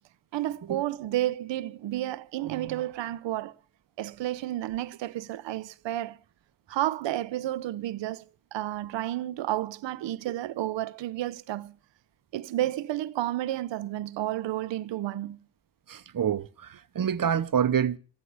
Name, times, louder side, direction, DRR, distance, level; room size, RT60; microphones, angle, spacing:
voice 1, 0.3-3.6 4.0-6.2 6.7-11.8 12.3-15.4, right 14 dB, 85° right, 0.8 m, -31 dB
voice 2, 15.9-18.0, right 8 dB, 50° right, 1.0 m, -27 dB
18.5 x 13.5 x 4.8 m
cardioid pair, 55°, 43 cm